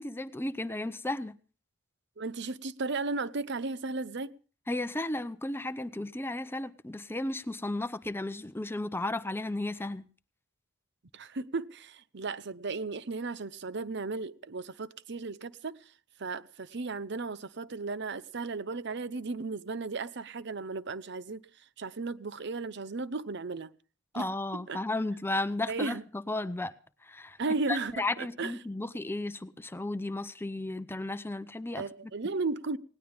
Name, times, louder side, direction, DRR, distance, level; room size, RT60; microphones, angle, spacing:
voice 1, 0.0-1.4 4.7-10.0 24.1-26.0 26.3-26.7 27.0-27.4 27.7-31.8, left 2 dB, 10° left, 0.7 m, -34 dB
voice 2, 2.2-4.3 11.1-15.8 16.2-21.4 21.8-23.7 24.1-24.2 24.5-24.8 25.7-26.0 27.4-28.5 31.8-32.8, right 3 dB, 60° right, 0.8 m, -35 dB
19.0 x 18.0 x 3.5 m
head